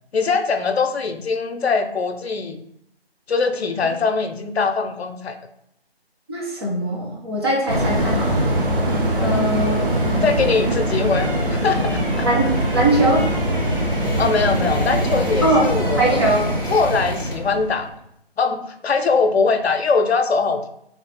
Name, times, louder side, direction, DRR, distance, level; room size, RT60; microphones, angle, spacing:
voice 1, 0.1-2.6 3.3-5.4 9.2-9.5 10.2-12.3 14.2-16.3 16.7-17.9 18.4-20.7, left 4 dB, 75° left, 7 dB, 0.5 m, -22 dB
voice 2, 6.3-8.5 9.2-9.8 11.0-11.1 12.2-13.2 15.4-15.6 15.9-16.4, right 1 dB, 25° right, -4 dB, 0.7 m, -21 dB
sound 1, 7.6-17.6 17.8-18.0, equal, 20° left, 0.5 m, -37 dB
sound 2, 7.7-17.9, right 1 dB, 55° right, 0.8 m, -22 dB
3.2 x 2.5 x 3.2 m, 0.76 s
figure-of-eight pair, 155°, 32 cm